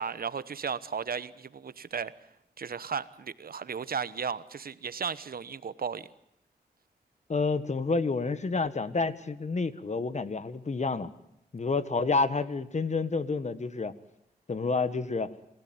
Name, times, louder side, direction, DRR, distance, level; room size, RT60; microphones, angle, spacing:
voice 1, 0.0-2.1 2.6-6.1, right 6 dB, 65° right, 15 dB, 1.1 m, -35 dB
voice 2, 7.3-11.1 11.5-13.9 14.5-15.3, left 4 dB, 45° left, 13 dB, 1.6 m, -29 dB
27.0 x 16.0 x 9.5 m, 0.80 s
cardioid pair, 60°, 16 cm